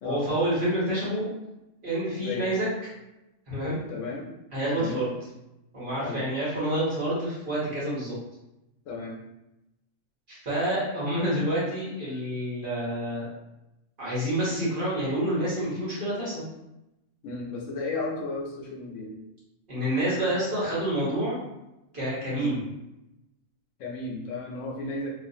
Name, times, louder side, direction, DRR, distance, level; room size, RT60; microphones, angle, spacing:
voice 1, 0.0-1.3 1.8-2.7 3.5-3.8 4.5-5.1 5.7-8.2 10.3-13.3 14.0-16.5 19.7-21.4 21.9-22.7, right 1 dB, 45° right, -8 dB, 1.1 m, -28 dB
voice 2, 3.9-4.3 4.7-5.0 6.0-6.2 8.9-9.2 17.2-19.2 22.3-22.6 23.8-25.1, left 3 dB, 75° left, -1 dB, 0.9 m, -34 dB
2.4 x 2.4 x 2.6 m, 0.92 s
omnidirectional pair, 1.3 m